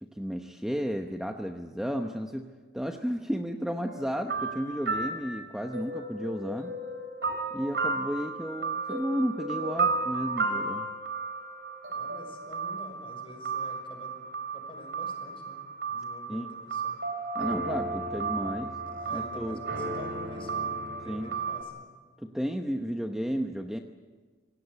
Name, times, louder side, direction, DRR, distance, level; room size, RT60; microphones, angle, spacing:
voice 1, 0.0-2.5 2.7-6.8 7.5-10.9 16.3-16.5 17.3-18.7 19.1-19.6 21.0-21.4 22.2-23.8, equal, 5° right, 4 dB, 0.9 m, -33 dB
sound 1, 3.9-21.6, right 3 dB, 65° right, 3.8 m, -33 dB
voice 2, 11.9-14.2 14.5-17.0 18.6-21.8, equal, 30° left, 3 dB, 5.9 m, -47 dB
26.5 x 18.0 x 8.3 m, 1.4 s
head